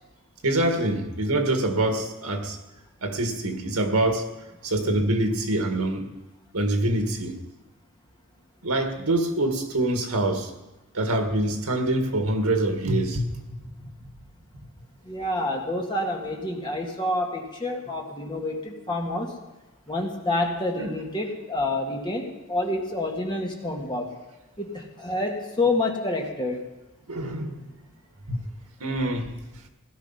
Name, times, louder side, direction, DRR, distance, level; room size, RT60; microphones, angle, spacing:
voice 1, 0.4-2.6 3.0-4.3 4.6-6.1 6.5-7.3 8.6-10.5 10.9-13.6 14.5-14.6 20.8-20.9 27.1-27.7 28.3-28.4 28.8-29.3, right 1 dB, 80° right, 5 dB, 1.8 m, -25 dB
voice 2, 15.0-19.3 19.9-24.1 24.6-26.6, left 2 dB, 20° left, 0 dB, 1.9 m, -28 dB
17.5 x 11.5 x 5.7 m, 1.1 s
head